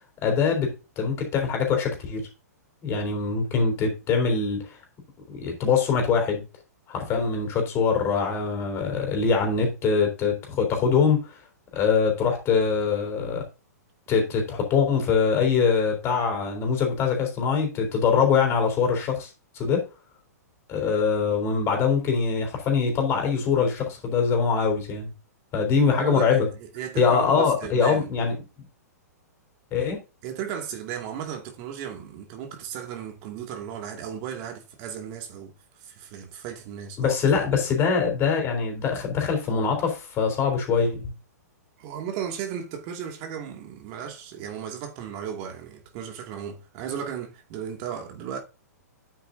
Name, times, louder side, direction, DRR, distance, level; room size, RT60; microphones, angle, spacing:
voice 1, 0.2-2.3 2.8-4.8 5.3-6.4 6.9-11.2 11.7-13.4 14.1-19.3 19.6-19.8 20.7-25.1 25.5-26.5 27.0-28.3 29.7-30.0 37.0-41.1, left 5 dB, 30° left, 3.8 m, -23 dB
voice 2, 26.0-28.1 30.2-35.5 35.8-37.7 41.8-48.4, right 8 dB, 40° right, 2.2 m, -35 dB
9.4 x 8.0 x 2.7 m
hypercardioid pair, 115°, 9 cm